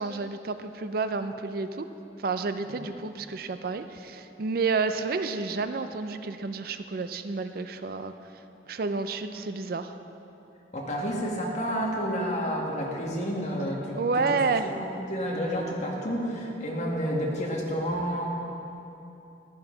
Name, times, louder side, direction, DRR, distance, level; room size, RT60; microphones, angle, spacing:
voice 1, 0.0-1.9 2.2-8.1 8.7-9.9 13.9-14.7, right 4 dB, 55° right, 10 dB, 0.4 m, -30 dB
voice 2, 10.7-18.3, equal, 40° left, -2 dB, 1.8 m, -30 dB
15.0 x 12.0 x 3.9 m, 3.0 s
head